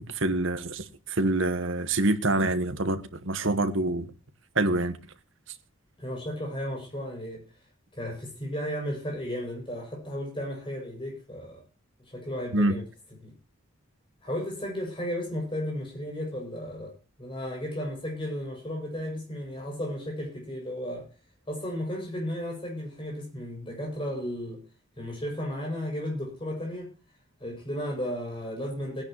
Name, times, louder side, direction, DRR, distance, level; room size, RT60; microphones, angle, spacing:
voice 1, 0.1-4.1 4.5-4.9 12.5-12.7, right 2 dB, 65° right, 1.3 m, -26 dB
voice 2, 6.0-7.4 7.9-11.6 12.1-12.9 13.2-13.3 14.2-16.9 17.2-21.1 21.5-24.6 25.0-26.9 27.4-29.0, equal, 25° left, 6.8 m, -34 dB
20.0 x 10.5 x 3.0 m
head